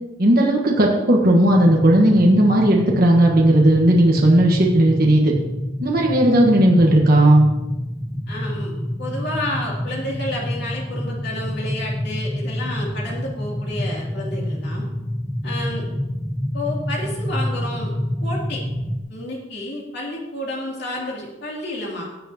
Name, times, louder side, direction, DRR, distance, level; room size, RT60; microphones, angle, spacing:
voice 1, 0.2-5.3 5.8-7.5, right 1 dB, 45° right, -1 dB, 1.4 m, -15 dB
sound 1, 1.5-19.0, equal, 5° left, 0.7 m, -28 dB
voice 2, 8.3-8.7 9.0-14.8 15.4-15.8 16.5-17.9 18.2-18.6 19.1-22.1, left 1 dB, 55° left, -3 dB, 2.9 m, -30 dB
17.5 x 7.7 x 2.9 m, 1.1 s
head